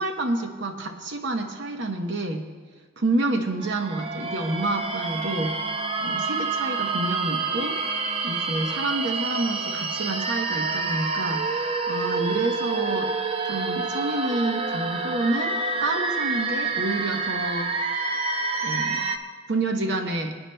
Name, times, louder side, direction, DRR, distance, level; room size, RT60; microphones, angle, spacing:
voice 1, 0.0-2.5 3.0-5.6 6.0-7.8 8.2-13.1 13.4-17.7 18.6-19.0 19.5-20.4, right 2 dB, 55° right, 4 dB, 0.8 m, -28 dB
sound 1, 3.6-19.2, right 4 dB, 30° right, 0.5 m, -28 dB
24.5 x 9.8 x 2.2 m, 1.5 s
head